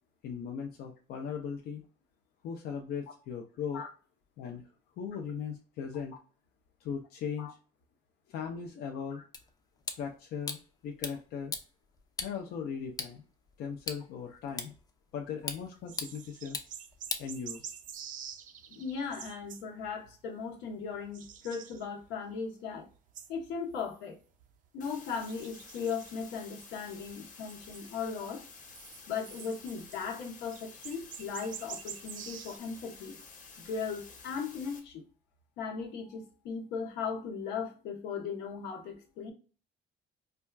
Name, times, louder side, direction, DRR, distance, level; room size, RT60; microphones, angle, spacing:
voice 1, 0.2-1.8 2.4-3.8 4.4-4.7 5.0-6.1 6.8-7.5 8.3-9.2 10.0-10.6 10.8-11.5 12.2-13.2 13.6-14.7 15.1-16.6 17.2-17.7, left 7 dB, 70° left, 0.5 m, -38 dB
sound 1, 9.3-17.9, left 4 dB, 20° left, 0.5 m, -43 dB
sound 2, 15.4-20.2 20.5-22.4 22.7-24.7 25.2-27.2 27.5-28.3 28.7-32.6, right 8 dB, 50° right, 0.4 m, -47 dB
voice 2, 18.7-22.9 23.3-24.1 24.7-28.4 29.1-33.2 33.6-35.0 35.6-39.3, left 6 dB, 90° left, 0.9 m, -38 dB
sound 3, 24.8-34.8, left 4 dB, 50° left, 1.0 m, -51 dB
4.2 x 2.3 x 2.2 m
cardioid pair, 110°, 17 cm